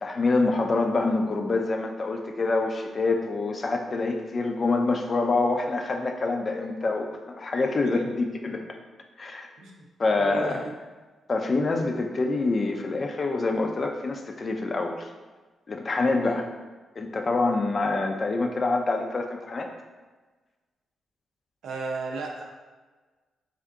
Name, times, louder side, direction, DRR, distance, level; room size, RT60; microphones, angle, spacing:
voice 1, 0.0-8.6 9.2-9.5 10.0-10.6 11.3-15.1 15.7-16.5 17.0-19.7, left 3 dB, 45° left, 3 dB, 0.5 m, -26 dB
voice 2, 10.1-10.7 16.2-16.4 21.6-22.4, right 3 dB, 80° right, 0 dB, 0.6 m, -34 dB
3.6 x 2.7 x 3.5 m, 1.3 s
supercardioid pair, 60°, 0 cm